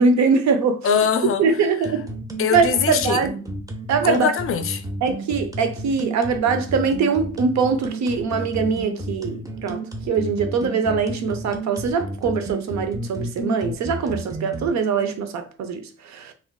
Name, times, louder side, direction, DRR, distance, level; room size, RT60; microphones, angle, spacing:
voice 1, 0.0-0.8 1.4-2.1 2.5-3.3 3.9-4.3 5.0-16.3, right 5 dB, 65° right, 0.6 m, -22 dB
voice 2, 0.8-1.4 2.4-3.2 4.0-4.8, left 7 dB, 45° left, 0.4 m, -22 dB
sound 1, 1.8-14.7, right 1 dB, 10° right, 0.6 m, -32 dB
3.4 x 2.5 x 2.2 m
cardioid pair, 90°, 30 cm